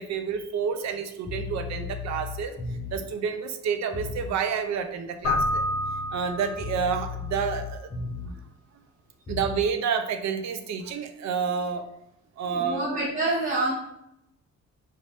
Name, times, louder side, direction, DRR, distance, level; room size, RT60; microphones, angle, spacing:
voice 1, 0.0-2.6 2.9-5.6 6.1-8.4 9.3-11.9 12.4-12.9, right 6 dB, 65° right, 8 dB, 0.5 m, -29 dB
sound 1, 1.2-3.1 3.9-4.3 5.3-8.5 9.3-9.7, left 5 dB, 20° left, 0.6 m, -36 dB
Keyboard (musical), 5.2-7.1, left 2 dB, 65° left, 0.6 m, -28 dB
voice 2, 12.5-13.7, right 2 dB, 25° right, -5 dB, 0.8 m, -27 dB
2.6 x 2.5 x 3.3 m, 0.81 s
cardioid pair, 90°, 30 cm